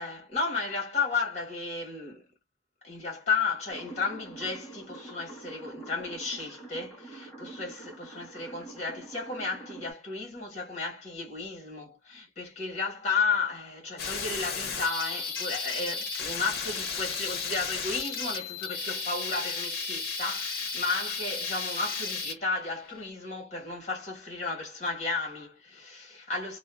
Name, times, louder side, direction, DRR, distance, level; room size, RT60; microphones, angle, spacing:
voice 1, 0.0-2.3 2.8-26.6, left 4 dB, 35° left, 1.3 m, -33 dB
sound 1, 3.7-9.9, right 3 dB, 10° left, 1.0 m, -46 dB
sound 2, 14.0-23.1, left 5 dB, 50° left, 0.7 m, -34 dB
2.6 x 2.1 x 2.3 m
head